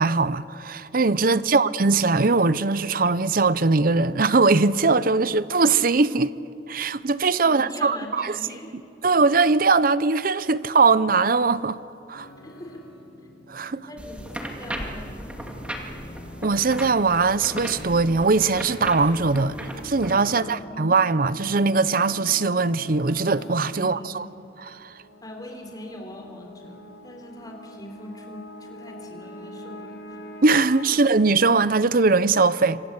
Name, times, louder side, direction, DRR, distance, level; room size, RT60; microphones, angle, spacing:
voice 1, 0.0-6.3 6.7-8.4 9.0-11.8 12.1-12.3 13.5-13.9 16.4-19.5 19.8-24.2 24.6-24.9 30.4-32.8, right 4 dB, 55° right, 0.7 m, -21 dB
voice 2, 1.2-1.7 7.4-8.7 12.4-12.8 13.8-15.8 19.4-19.7 20.2-20.8 23.7-24.2 25.2-30.2 30.9-31.0, left 1 dB, 20° left, 3.8 m, -41 dB
sound 1, 12.1-31.0, equal, 65° left, 2.2 m, -45 dB
sound 2, 14.0-20.2, equal, 5° right, 2.4 m, -36 dB
26.5 x 26.0 x 8.2 m
head